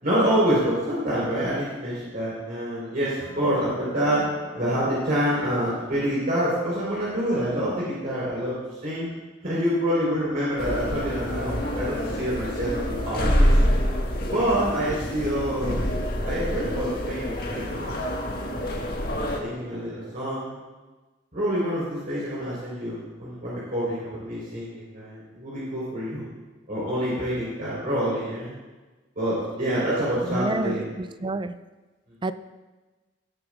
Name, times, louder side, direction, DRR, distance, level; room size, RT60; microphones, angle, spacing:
voice 1, 0.0-4.2 4.5-8.5 8.8-9.1 9.4-13.6 14.3-15.8 16.2-18.0 18.5-18.9 19.4-20.6 21.3-26.2 26.7-28.5 29.2-30.9, equal, 50° right, -8 dB, 4.2 m, -27 dB
sound 1, 3.2-7.3, left 2 dB, 35° left, 2.4 m, -44 dB
sound 2, 10.6-19.4, equal, 55° left, 1.7 m, -26 dB
voice 2, 30.2-31.6 32.2-32.3, right 2 dB, 25° right, 12 dB, 0.4 m, -29 dB
19.5 x 11.0 x 2.5 m, 1.2 s
head